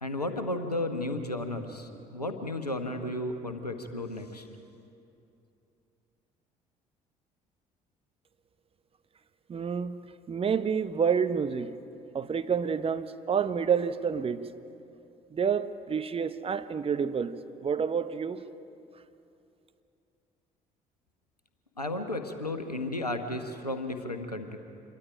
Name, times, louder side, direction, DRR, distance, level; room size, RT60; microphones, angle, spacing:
voice 1, 0.0-4.5 21.8-24.6, left 1 dB, 90° left, 1.0 m, -33 dB
voice 2, 9.5-11.8 12.1-14.5 15.3-18.5, right 6 dB, 30° right, 0.9 m, -29 dB
26.5 x 22.0 x 5.1 m
figure-of-eight pair, 50°, 20 cm